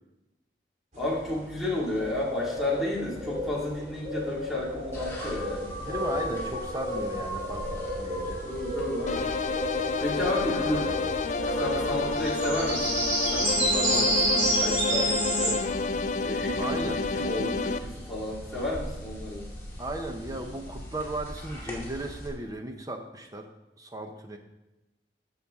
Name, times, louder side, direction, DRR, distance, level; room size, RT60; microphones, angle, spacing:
voice 1, 0.9-5.7 8.4-9.3 10.0-10.9 11.5-15.7 16.2-19.5, left 1 dB, ahead, -6 dB, 2.4 m, -32 dB
sound 1, 0.9-15.5, right 1 dB, 40° right, 2.5 m, -31 dB
sound 2, 4.9-22.3, equal, 15° left, 2.1 m, -40 dB
voice 2, 5.8-8.4 16.6-17.0 19.8-23.5 23.8-24.4, right 1 dB, 20° right, 4 dB, 0.8 m, -36 dB
sound 3, 9.1-17.8, left 4 dB, 40° left, 0.3 m, -29 dB
14.5 x 5.7 x 3.7 m, 0.99 s
head